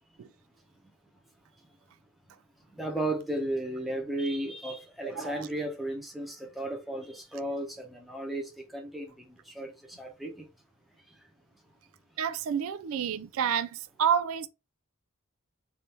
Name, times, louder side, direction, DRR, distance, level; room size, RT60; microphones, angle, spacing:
voice 1, 2.8-9.1 9.5-9.7 10.0-10.3, right 1 dB, ahead, 0.8 m, -34 dB
voice 2, 5.2-5.5 12.2-14.5, right 8 dB, 70° right, 0.3 m, -29 dB
3.5 x 2.6 x 4.3 m
head